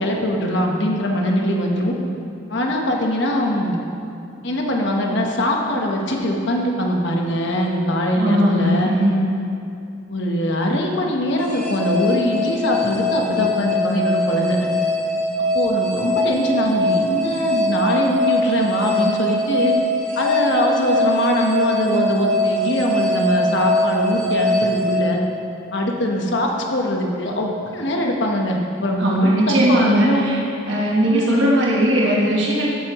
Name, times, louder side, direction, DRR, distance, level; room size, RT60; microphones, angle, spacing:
voice 1, 0.0-1.9 2.5-3.8 4.4-8.9 10.1-14.6 15.5-19.8 20.2-25.2 25.7-30.4 31.1-31.5, left 1 dB, 60° left, 0 dB, 1.2 m, -22 dB
voice 2, 8.1-9.2 29.0-30.4 30.7-32.7, right 1 dB, 65° right, -4 dB, 1.3 m, -18 dB
sound 1, 11.4-25.8, left 1 dB, 5° left, 1.6 m, -22 dB
13.5 x 8.4 x 3.1 m, 2.6 s
head